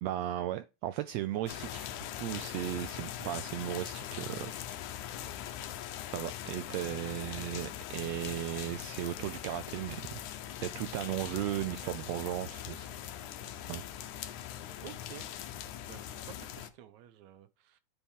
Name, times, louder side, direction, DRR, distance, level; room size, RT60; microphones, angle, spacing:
voice 1, 0.0-1.9 2.2-4.5 6.1-10.2 10.6-13.1 13.7-13.8, right 13 dB, 90° right, 1.5 m, -36 dB
sound 1, 1.5-16.7, left 11 dB, 80° left, 2.2 m, -41 dB
voice 2, 14.8-15.3 15.9-17.8, right 11 dB, 75° right, 2.0 m, -51 dB
9.9 x 4.3 x 3.6 m
omnidirectional pair, 3.5 m